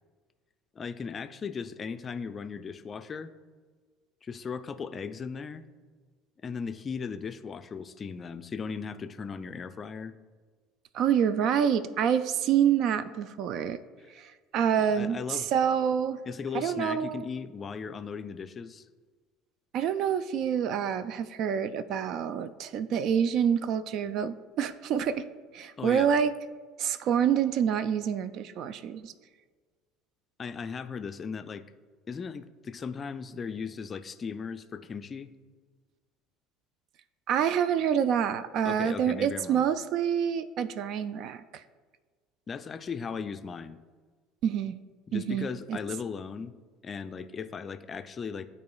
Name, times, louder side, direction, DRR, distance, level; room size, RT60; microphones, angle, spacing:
voice 1, 0.8-3.3 4.2-5.6 6.4-10.2 14.0-14.1 14.8-15.5 16.3-18.9 25.8-26.1 30.4-31.6 32.1-35.3 38.6-39.7 42.5-43.8 45.1-46.5 46.8-48.5, left 6 dB, 30° left, 10 dB, 0.4 m, -37 dB
voice 2, 10.9-13.8 14.2-16.2 16.5-17.3 19.7-25.3 25.5-26.3 26.8-29.1 37.3-41.6 44.4-44.7 45.1-45.8, right 8 dB, 50° right, 15 dB, 0.3 m, -27 dB
12.0 x 4.1 x 2.3 m, 1.5 s
figure-of-eight pair, 65°, 0 cm